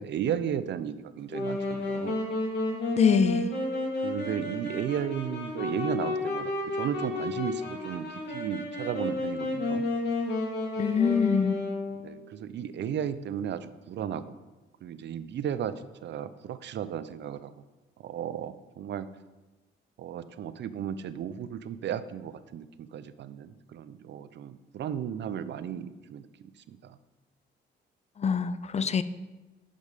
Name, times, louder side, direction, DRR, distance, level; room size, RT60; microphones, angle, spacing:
voice 1, 0.0-2.2 4.0-9.8 12.0-14.4 14.8-15.8 16.0-17.5 18.0-19.1 20.0-22.6 22.9-27.0, right 9 dB, 65° right, 13 dB, 0.6 m, -34 dB
Wind instrument woodwind instrument, 1.3-12.2, left 2 dB, 60° left, 2.9 m, -31 dB
voice 2, 3.0-3.5 10.8-11.6 28.2-29.0, left 6 dB, 35° left, 14 dB, 0.5 m, -24 dB
10.5 x 5.4 x 5.0 m, 1.2 s
cardioid pair, 90°, 20 cm